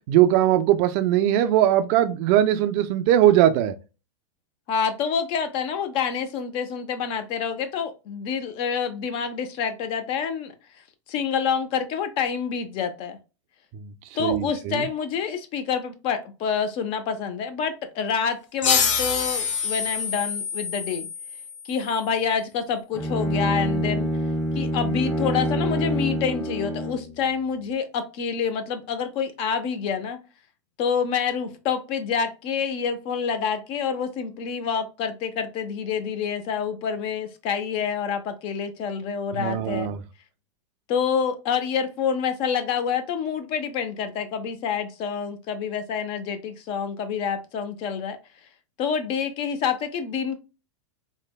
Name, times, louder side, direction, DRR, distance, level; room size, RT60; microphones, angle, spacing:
voice 1, 0.1-3.7 13.8-13.9 14.2-14.9 39.3-40.0, right 12 dB, 40° right, 0.4 m, -20 dB
voice 2, 4.7-10.5 11.1-13.2 14.2-21.1 21.6-24.1 24.5-30.2 30.8-39.9 40.9-48.2 48.8-50.4, left 7 dB, 35° left, 0.5 m, -27 dB
sound 1, 18.6-21.9, left 5 dB, 85° left, 0.8 m, -26 dB
Bowed string instrument, 22.9-27.1, equal, 20° left, 1.1 m, -26 dB
3.2 x 2.1 x 2.2 m
supercardioid pair, 145°, 16 cm